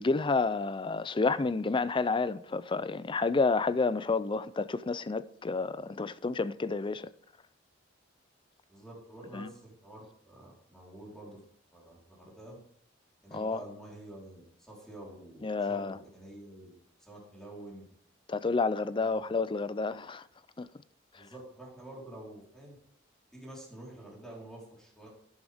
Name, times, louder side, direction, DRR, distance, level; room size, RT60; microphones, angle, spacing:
voice 1, 0.0-7.1 9.3-9.5 13.3-13.6 15.4-15.9 18.3-20.2 20.6-20.7, left 4 dB, 25° left, 0.4 m, -30 dB
voice 2, 8.7-11.4 11.7-12.6 13.2-16.7 17.0-17.9 19.0-19.2 21.1-22.8 23.3-25.1, right 1 dB, 5° left, 4.2 m, -48 dB
11.5 x 11.0 x 3.6 m
head